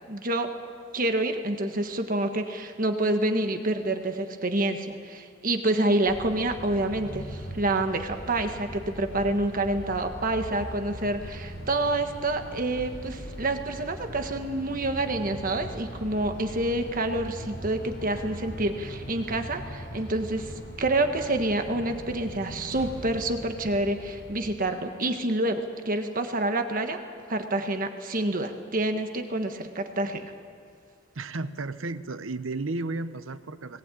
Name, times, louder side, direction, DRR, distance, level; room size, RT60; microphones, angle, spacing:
voice 1, 0.1-0.5 0.9-27.0 27.3-30.3, right 2 dB, 45° right, 6 dB, 1.4 m, -28 dB
sound 1, 6.1-24.5, equal, 55° left, 3.9 m, -40 dB
voice 2, 31.1-33.8, right 3 dB, 85° right, 12 dB, 0.9 m, -33 dB
20.0 x 18.5 x 9.1 m, 2.2 s
head